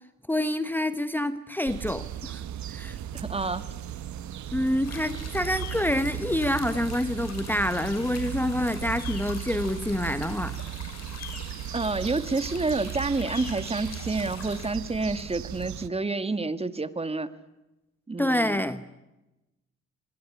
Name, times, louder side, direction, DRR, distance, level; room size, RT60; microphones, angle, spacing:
voice 1, 0.3-2.4 2.7-3.0 4.5-10.6 18.2-18.8, left 1 dB, 5° left, 12 dB, 1.2 m, -27 dB
sound 1, 1.7-15.9, right 11 dB, 70° right, 1.5 m, -36 dB
voice 2, 3.1-3.6 11.7-17.3 18.1-18.6, right 3 dB, 20° right, 13 dB, 1.8 m, -29 dB
sound 2, 4.8-14.7, left 6 dB, 60° left, 6.3 m, -44 dB
25.0 x 22.0 x 9.6 m, 0.99 s
cardioid pair, 90°, 30 cm